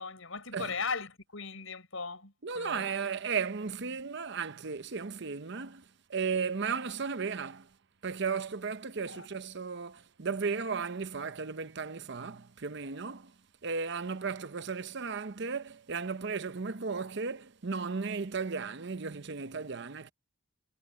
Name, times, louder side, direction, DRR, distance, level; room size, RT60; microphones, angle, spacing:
voice 1, 0.0-2.9 9.1-9.3, left 4 dB, 75° left, 5.4 m, -38 dB
voice 2, 2.4-7.7 8.0-13.3 13.6-20.1, right 5 dB, 55° right, 0.8 m, -35 dB
head